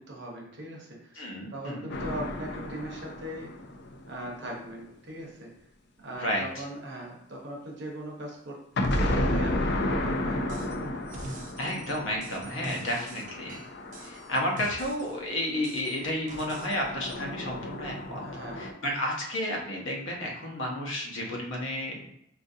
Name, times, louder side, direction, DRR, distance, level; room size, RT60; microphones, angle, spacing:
voice 1, 0.0-1.2 1.5-3.5 4.1-5.5 6.0-8.6 9.0-10.8 18.2-18.7, right 1 dB, 65° right, -1 dB, 0.9 m, -39 dB
voice 2, 1.2-1.9 6.1-6.5 11.6-13.6 14.0-18.2 18.6-22.1, left 1 dB, 80° left, -1 dB, 0.9 m, -32 dB
sound 1, 1.9-4.7 8.8-15.0 16.3-18.7, left 1 dB, 60° left, 0.4 m, -32 dB
sound 2, 10.5-10.8 11.1-15.2 15.6-16.8 17.1-17.2, right 2 dB, 40° right, 0.5 m, -44 dB
3.8 x 2.5 x 2.7 m, 0.75 s
head